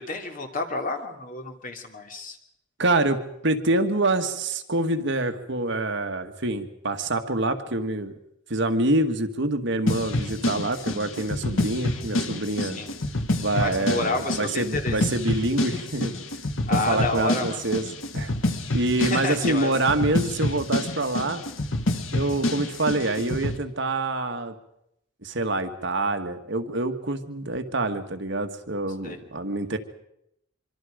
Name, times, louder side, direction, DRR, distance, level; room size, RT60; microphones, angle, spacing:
voice 1, 0.0-2.4 12.6-13.0 13.6-15.0 16.7-17.6 19.0-19.7 29.0-29.2, left 3 dB, 45° left, 4 dB, 2.8 m, -30 dB
voice 2, 2.8-8.1 8.5-12.8 13.4-16.1 16.7-17.8 18.1-18.3 18.7-21.4 22.1-24.5 25.2-29.8, right 2 dB, 65° right, 6 dB, 1.8 m, -26 dB
sound 1, 9.9-23.6, left 1 dB, 85° left, 2.0 m, -28 dB
25.0 x 25.0 x 5.2 m, 0.77 s
head